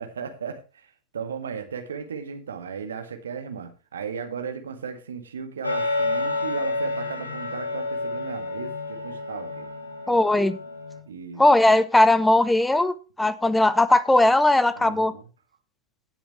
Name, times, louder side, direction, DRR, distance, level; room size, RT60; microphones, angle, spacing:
voice 1, 0.0-9.7 11.1-11.4 14.8-15.2, right 6 dB, 65° right, 6 dB, 1.8 m, -36 dB
sound 1, 5.6-11.0, left 2 dB, 75° left, 3.7 m, -29 dB
voice 2, 10.1-10.6 11.4-15.1, left 1 dB, 5° left, 17 dB, 0.8 m, -19 dB
17.0 x 7.1 x 3.2 m, 0.33 s
figure-of-eight pair, 90°, 0 cm